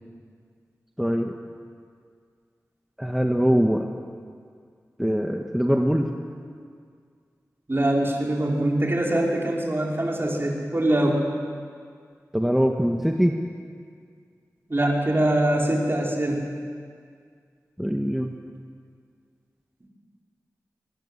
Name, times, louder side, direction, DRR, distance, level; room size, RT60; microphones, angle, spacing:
voice 1, 1.0-1.3 3.0-3.9 5.0-6.1 12.3-13.3 17.8-18.3, equal, 5° right, 2 dB, 1.8 m, -22 dB
voice 2, 7.7-11.2 14.7-16.4, right 1 dB, 40° right, -1 dB, 5.4 m, -23 dB
22.0 x 22.0 x 8.4 m, 2.1 s
cardioid pair, 45°, 6 cm